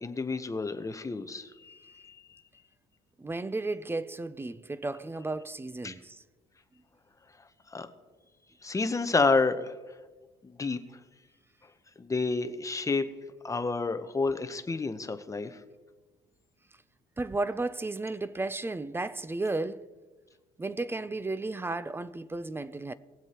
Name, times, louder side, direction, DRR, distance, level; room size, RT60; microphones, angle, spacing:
voice 1, 0.0-2.2 5.8-5.9 7.7-7.9 8.6-9.7 10.4-10.8 12.0-13.1 13.4-15.6, left 3 dB, 20° left, 0.8 m, -29 dB
voice 2, 3.2-6.2 17.2-19.9 20.6-22.9, right 2 dB, 15° right, 0.4 m, -33 dB
20.0 x 7.9 x 2.9 m
cardioid pair, 110°, 17 cm